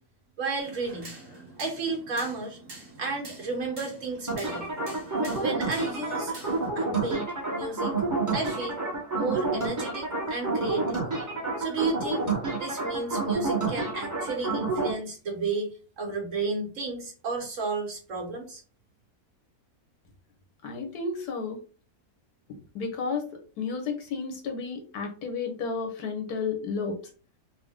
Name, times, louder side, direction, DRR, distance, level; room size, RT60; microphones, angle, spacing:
voice 1, 0.4-1.1 1.6-2.6 3.0-4.7 5.1-6.4 6.7-8.0 8.3-8.8 9.1-11.1 11.6-18.6, right 3 dB, 55° right, 1 dB, 1.4 m, -33 dB
sound 1, 0.6-6.7, right 2 dB, 35° right, 1.6 m, -46 dB
sound 2, 4.3-14.9, right 3 dB, 15° right, 1.0 m, -29 dB
voice 2, 20.6-21.6 22.7-23.3 23.6-27.0, left 4 dB, 90° left, 3 dB, 1.5 m, -32 dB
4.1 x 2.2 x 3.6 m, 0.38 s
omnidirectional pair, 1.6 m